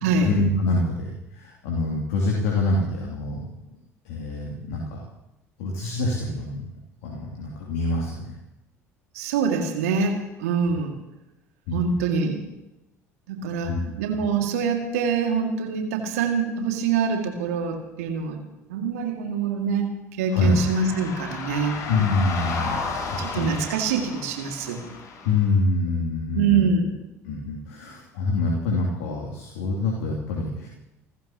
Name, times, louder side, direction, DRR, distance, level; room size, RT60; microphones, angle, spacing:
voice 1, 0.2-3.4 4.0-5.0 5.6-6.6 7.0-8.3 11.7-12.1 13.4-13.9 20.3-20.6 21.9-23.5 25.2-26.7 27.2-30.7, left 2 dB, 65° left, -2 dB, 2.9 m, -26 dB
voice 2, 9.1-11.0 11.7-12.4 13.3-18.4 18.7-21.7 23.2-24.8 26.3-26.9, right 5 dB, 70° right, 3 dB, 2.3 m, -25 dB
sound 1, 20.3-25.5, left 4 dB, 45° left, 5.1 m, -33 dB
28.5 x 14.5 x 3.0 m, 0.95 s
figure-of-eight pair, 60°, 8 cm